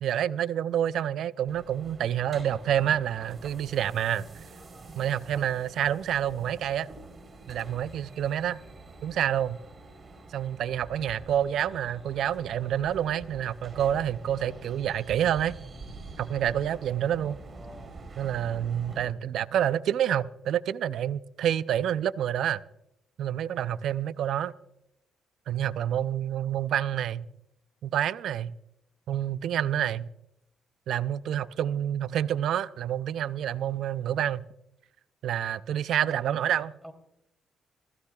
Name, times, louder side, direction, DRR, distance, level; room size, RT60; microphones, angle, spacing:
voice 1, 0.0-4.3 4.9-6.9 7.5-8.6 9.0-9.6 10.3-15.5 16.2-17.4 18.2-22.6 23.2-24.5 25.5-27.3 27.8-28.5 29.1-30.1 30.9-34.5 35.2-36.7, right 10 dB, 75° right, 0.5 m, -28 dB
sound 1, 1.5-19.1, right 3 dB, 40° right, 3.8 m, -46 dB
voice 2, 17.5-18.0 36.0-36.9, equal, 5° right, 3.1 m, -47 dB
27.5 x 16.0 x 2.4 m
cardioid pair, 90°, 0 cm